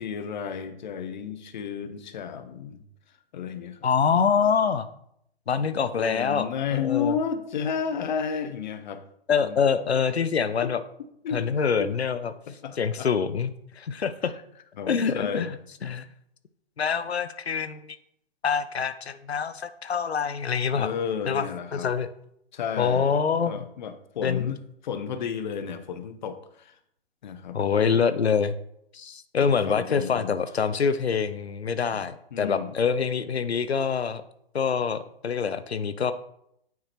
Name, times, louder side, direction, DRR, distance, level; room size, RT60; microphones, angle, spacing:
voice 1, 0.0-2.8 3.3-3.8 5.9-9.0 9.4-9.6 10.6-10.7 11.2-11.4 11.8-11.9 12.5-13.1 14.2-14.3 14.8-15.5 20.8-21.9 22.5-23.1 23.5-26.8 27.2-27.6 29.4-30.3 31.9-32.0 32.3-32.7, left 7 dB, 50° left, 10 dB, 0.7 m, -32 dB
voice 2, 3.8-4.9 5.5-7.2 9.3-10.8 11.3-12.3 12.8-14.3 14.9-15.6 15.8-16.1 16.8-17.9 18.4-20.9 21.3-21.5 21.7-22.1 22.8-23.6 24.2-24.5 27.5-28.5 28.9-34.2 34.5-36.1, left 6 dB, 90° left, 12 dB, 0.5 m, -25 dB
9.2 x 4.8 x 2.9 m, 0.74 s
figure-of-eight pair, 130°, 31 cm